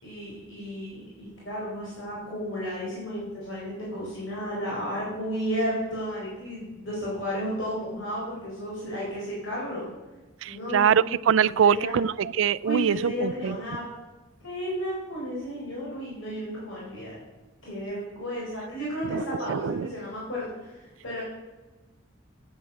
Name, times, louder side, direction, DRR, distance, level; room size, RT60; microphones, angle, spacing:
voice 1, 0.0-9.9 10.5-11.0 11.5-12.0 12.6-13.8 14.4-17.1 17.6-21.2, equal, 80° left, -5 dB, 4.0 m, -33 dB
voice 2, 10.4-13.6 19.0-19.9, right 8 dB, 75° right, 19 dB, 0.4 m, -24 dB
9.5 x 8.7 x 6.9 m, 1.2 s
head